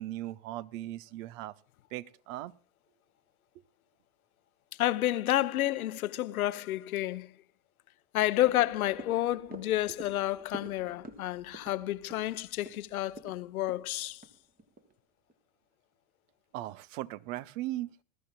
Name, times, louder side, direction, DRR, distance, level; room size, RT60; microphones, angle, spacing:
voice 1, 0.0-1.5 1.9-2.5 16.5-18.0, right 15 dB, 60° right, 0.9 m, -38 dB
voice 2, 4.7-7.4 8.1-14.2, left 14 dB, 80° left, 0.8 m, -30 dB
sound 1, 8.4-14.9 15.3-15.4, right 2 dB, 20° right, 1.6 m, -49 dB
21.0 x 13.0 x 2.3 m
hypercardioid pair, 95°, 43 cm